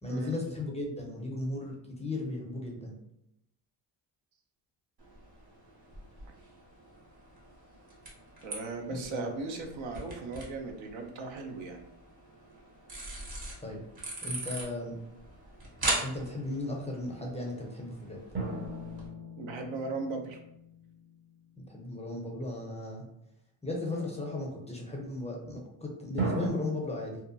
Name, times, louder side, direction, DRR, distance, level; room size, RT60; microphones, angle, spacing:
voice 1, 0.0-3.0 8.9-9.3 13.6-13.8 14.2-15.0 16.0-18.2 21.6-23.0 23.6-27.2, left 2 dB, 15° left, -1 dB, 0.5 m, -36 dB
sound 1, 5.0-19.1, right 2 dB, 50° right, 1.2 m, -41 dB
voice 2, 8.4-11.8 19.4-20.4, right 3 dB, 65° right, 3 dB, 0.7 m, -37 dB
sound 2, 18.3-21.3 26.2-26.5, right 2 dB, 25° right, 0.7 m, -36 dB
2.8 x 2.2 x 2.5 m, 0.80 s
cardioid pair, 85°, 49 cm